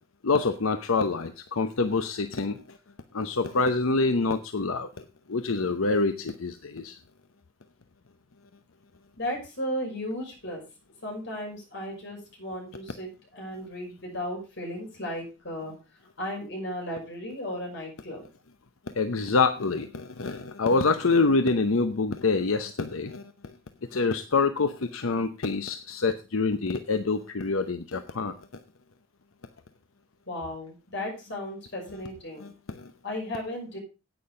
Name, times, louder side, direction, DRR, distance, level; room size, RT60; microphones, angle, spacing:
voice 1, 0.2-2.6 3.1-5.0 5.3-7.0 19.0-23.2 23.9-28.3 32.4-32.9, left 3 dB, 85° left, 9 dB, 0.8 m, -26 dB
voice 2, 9.2-10.6 11.0-15.7 16.2-18.2 30.3-32.5 33.0-33.8, left 1 dB, 55° left, 0 dB, 5.9 m, -35 dB
10.0 x 8.8 x 5.0 m, 0.31 s
head